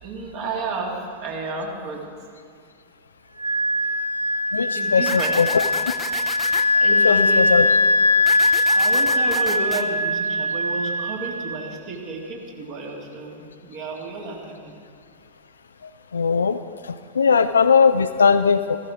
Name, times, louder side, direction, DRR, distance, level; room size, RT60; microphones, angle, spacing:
voice 1, 0.0-2.0 4.7-5.4 6.3-6.5 6.7-7.5 8.7-14.7, right 3 dB, 45° right, -1 dB, 2.2 m, -32 dB
Wind instrument woodwind instrument, 3.4-11.7, left 1 dB, 80° right, 0.5 m, -21 dB
voice 2, 4.5-5.6 7.0-7.6 16.1-16.6 16.8-18.8, left 6 dB, 75° left, 9 dB, 0.3 m, -19 dB
sound 1, 5.1-6.6 8.3-9.8, left 3 dB, 10° left, 0.6 m, -34 dB
14.5 x 14.5 x 3.7 m, 2.1 s
figure-of-eight pair, 90°, 0 cm